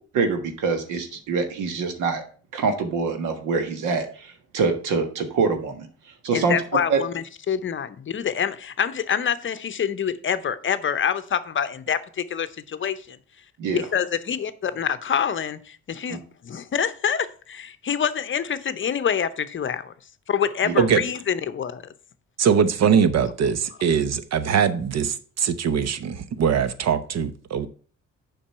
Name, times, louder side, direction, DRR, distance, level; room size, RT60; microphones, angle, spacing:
voice 1, 0.1-2.2 2.5-5.9 6.2-6.5 6.9-7.0 13.6-13.8 16.1-16.2 20.6-20.8, right 4 dB, 90° right, 1.5 m, -25 dB
voice 2, 6.3-13.2 13.7-19.9 20.3-21.8, left 8 dB, 40° left, 0.7 m, -26 dB
voice 3, 22.4-27.7, right 7 dB, 60° right, 0.9 m, -22 dB
7.3 x 5.4 x 5.6 m
cardioid pair, 90°, 30 cm